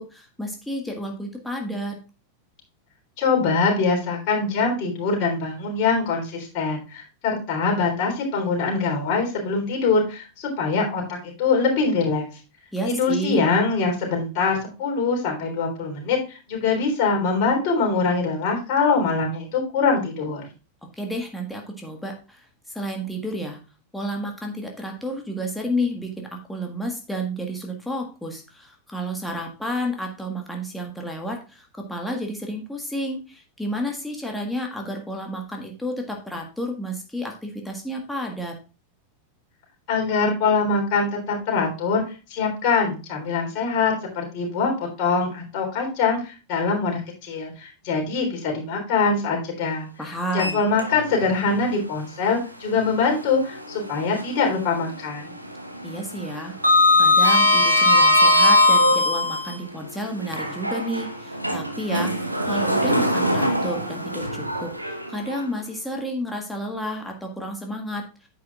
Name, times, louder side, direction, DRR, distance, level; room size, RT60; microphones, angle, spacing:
voice 1, 0.0-2.0 12.7-13.4 21.0-23.6 23.9-38.5 50.0-50.7 55.8-56.5 57.0-68.3, equal, 5° left, 1 dB, 1.6 m, -31 dB
voice 2, 3.2-12.2 12.8-20.5 39.9-42.0 42.3-44.7 45.0-49.9 50.3-55.3, left 4 dB, 45° left, -1 dB, 3.7 m, -23 dB
Sliding door, 50.3-51.3 51.7-51.8 53.5-54.5 54.8-55.2 55.4-59.5 60.2-65.4, left 1 dB, 90° right, 1.1 m, -20 dB
10.0 x 7.9 x 2.4 m, 0.32 s
figure-of-eight pair, 90°, 0 cm